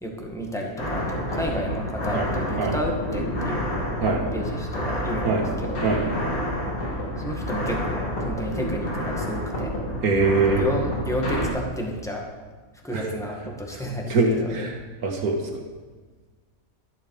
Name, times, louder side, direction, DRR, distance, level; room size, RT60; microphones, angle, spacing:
voice 1, 0.0-3.7 4.3-5.9 7.2-9.7 10.4-12.2 12.7-14.7, equal, ahead, -1 dB, 1.8 m, -31 dB
sound 1, 0.8-11.5, equal, 80° left, 2.6 m, -29 dB
voice 2, 10.0-10.6 12.9-13.1 14.1-14.7 15.0-15.4, right 3 dB, 90° right, 2 dB, 2.1 m, -22 dB
12.5 x 10.5 x 4.9 m, 1.4 s
omnidirectional pair, 1.5 m